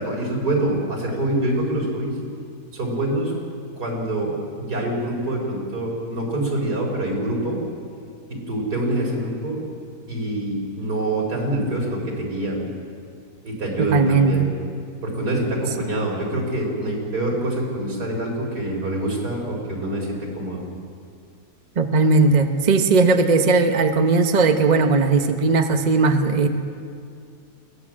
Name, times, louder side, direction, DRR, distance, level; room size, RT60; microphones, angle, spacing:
voice 1, 0.0-2.1 2.7-3.3 3.8-7.6 8.3-9.6 10.1-12.6 13.4-14.4 15.0-20.6, right 1 dB, 80° right, -2 dB, 5.1 m, -25 dB
voice 2, 13.9-14.5 21.8-26.5, right 4 dB, 30° right, 6 dB, 1.0 m, -18 dB
22.0 x 17.5 x 7.6 m, 2.3 s
omnidirectional pair, 1.7 m